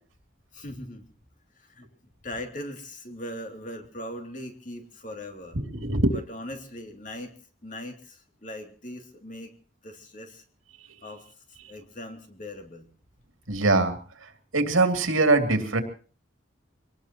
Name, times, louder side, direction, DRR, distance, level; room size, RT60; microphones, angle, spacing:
voice 1, 0.5-1.1 1.5-1.9 2.2-5.6 6.1-7.3 7.6-9.5 9.8-10.4 11.0-12.9, left 1 dB, 40° left, 4 dB, 2.8 m, -40 dB
voice 2, 5.5-6.2 13.5-15.8, right 2 dB, 85° right, 6 dB, 2.8 m, -23 dB
25.0 x 19.0 x 3.0 m, 0.39 s
head